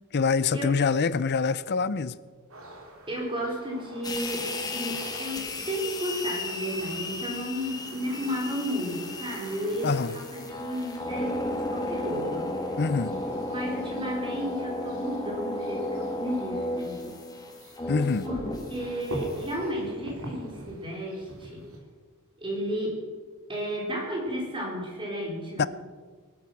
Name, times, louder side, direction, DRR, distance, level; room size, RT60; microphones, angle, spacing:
voice 1, 0.1-2.2 9.8-10.1 12.8-13.2 17.9-18.2 25.6-25.7, left 5 dB, 50° left, 0.5 m, -25 dB
sound 1, 2.5-21.8, right 1 dB, 65° right, 3.6 m, -46 dB
voice 2, 3.1-5.4 5.7-12.5 13.5-17.0 18.2-18.4 18.7-21.7 22.4-23.0 23.5-25.7, equal, 25° right, 4.5 m, -33 dB
sound 2, 4.0-19.7, left 2 dB, 15° left, 1.6 m, -34 dB
19.0 x 11.5 x 6.0 m
head